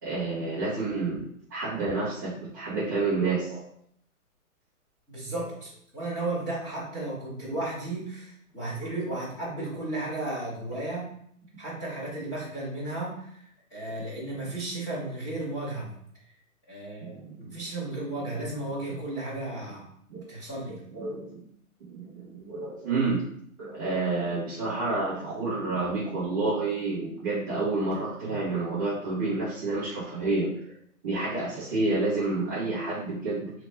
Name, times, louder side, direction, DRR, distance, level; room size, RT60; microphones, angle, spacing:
voice 1, 0.0-1.2 1.5-3.6 17.0-17.6 20.1-20.2 20.9-21.4 21.9-23.2 23.6-30.5 31.0-33.5, right 3 dB, 15° right, -12 dB, 0.7 m, -29 dB
voice 2, 5.1-11.1 11.6-15.9 16.7-19.9 20.3-20.8 28.2-28.4, right 2 dB, 5° left, -10 dB, 1.1 m, -34 dB
3.2 x 3.1 x 3.1 m, 0.67 s
hypercardioid pair, 170°, 45 cm